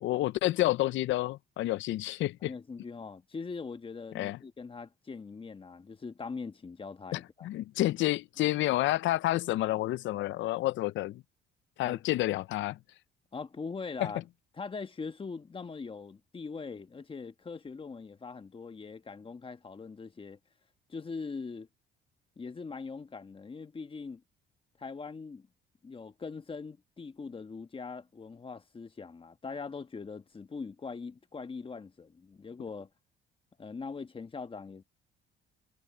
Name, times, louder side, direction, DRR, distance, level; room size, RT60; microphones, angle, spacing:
voice 1, 0.0-2.5 4.1-4.4 7.1-11.2 11.8-12.8, left 16 dB, 65° left, 0.5 m, -29 dB
voice 2, 2.4-7.5 11.8-12.0 13.3-14.2 14.5-20.4 20.9-21.7 22.4-24.2 24.8-25.5 25.8-32.9 33.6-34.8, left 4 dB, 25° left, 1.3 m, -41 dB
cardioid pair, 110°, 21 cm